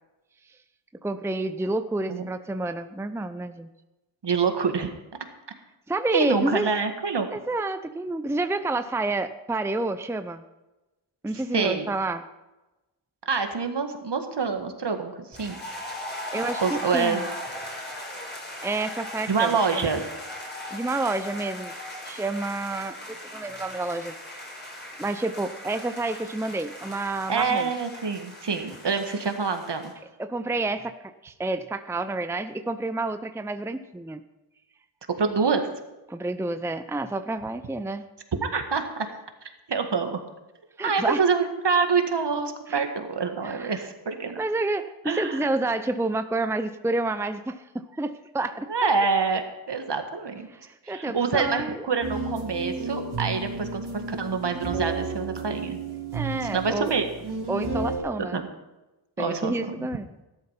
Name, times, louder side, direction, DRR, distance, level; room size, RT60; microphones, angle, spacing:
voice 1, 1.0-3.7 5.9-6.7 7.3-10.4 11.2-12.2 16.3-17.2 18.6-19.8 20.7-21.7 22.0-24.1 25.0-27.7 30.2-34.2 36.1-38.0 40.8-41.2 42.7-42.8 43.4-43.9 44.4-48.7 50.5-51.8 56.1-56.9 57.5-58.4 59.2-60.1, right 2 dB, 5° right, 10 dB, 0.7 m, -29 dB
voice 2, 4.2-4.9 6.1-7.3 11.5-11.9 13.3-15.6 16.6-17.2 19.3-20.0 27.3-29.9 35.2-35.7 38.4-39.1 39.7-40.2 40.8-44.4 45.1-45.6 48.7-50.5 50.8-55.8 56.4-57.1 58.2-58.5 59.2-59.9, right 5 dB, 60° right, 6 dB, 1.9 m, -26 dB
sound 1, 15.3-29.9, left 1 dB, 20° left, 4.7 m, -38 dB
sound 2, 52.0-58.0, right 3 dB, 90° right, 2.9 m, -32 dB
13.5 x 11.5 x 5.7 m, 1.0 s
cardioid pair, 50°, 47 cm